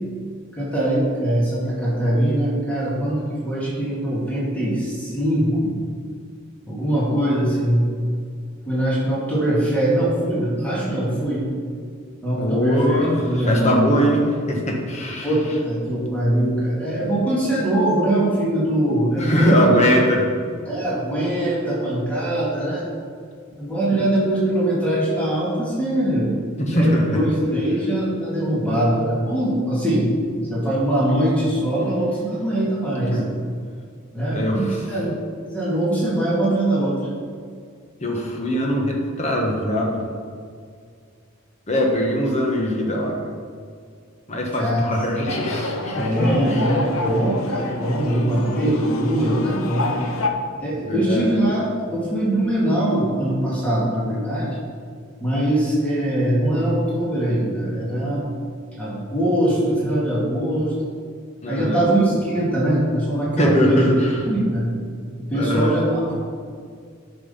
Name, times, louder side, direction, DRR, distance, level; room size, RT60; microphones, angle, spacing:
voice 1, 0.6-5.7 6.6-8.1 8.7-11.5 12.2-13.0 13.2-13.8 15.2-19.7 20.7-22.8 23.6-26.4 26.7-30.1 30.5-33.2 34.1-35.2 35.5-37.0 44.5-44.8 45.9-49.9 50.6-54.6 55.2-58.3 58.8-60.7 61.5-63.9 64.3-64.7 65.2-66.2, right 1 dB, 5° left, -6 dB, 2.3 m, -22 dB
voice 2, 12.4-15.3 19.2-20.3 26.6-27.0 33.1-33.3 34.3-34.8 38.0-40.0 41.7-43.2 44.3-46.7 50.9-51.3 61.4-61.8 63.4-64.2 65.3-65.7, equal, 30° left, -1 dB, 1.5 m, -21 dB
sound 1, 45.3-50.3, left 3 dB, 80° left, 0.9 m, -28 dB
9.5 x 6.1 x 5.7 m, 2.1 s
head